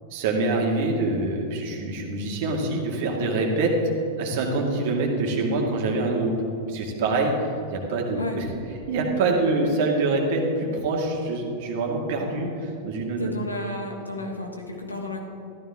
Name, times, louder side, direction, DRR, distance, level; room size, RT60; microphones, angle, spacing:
voice 1, 0.1-3.8 4.2-6.4 6.7-7.4 7.7-8.5 8.9-13.3, right 3 dB, 50° right, 1 dB, 2.1 m, -25 dB
voice 2, 13.2-15.2, left 1 dB, 80° left, 1 dB, 1.7 m, -32 dB
14.0 x 13.0 x 3.6 m, 2.8 s
figure-of-eight pair, 90°, 0 cm